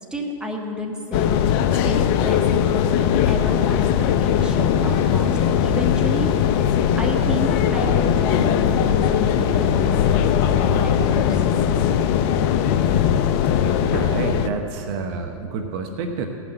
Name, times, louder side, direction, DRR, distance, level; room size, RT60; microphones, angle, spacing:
voice 1, 0.1-2.9 3.2-5.3 5.6-6.3 7.0-11.4, left 1 dB, 5° right, 0 dB, 1.5 m, -30 dB
sound 1, 1.1-14.5, left 8 dB, 45° left, 0.6 m, -19 dB
sound 2, 9.2-12.9, left 3 dB, 25° left, 1.5 m, -39 dB
voice 2, 13.9-16.3, right 4 dB, 50° right, 5 dB, 1.0 m, -28 dB
15.5 x 6.0 x 7.9 m, 2.6 s
hypercardioid pair, 115°, 17 cm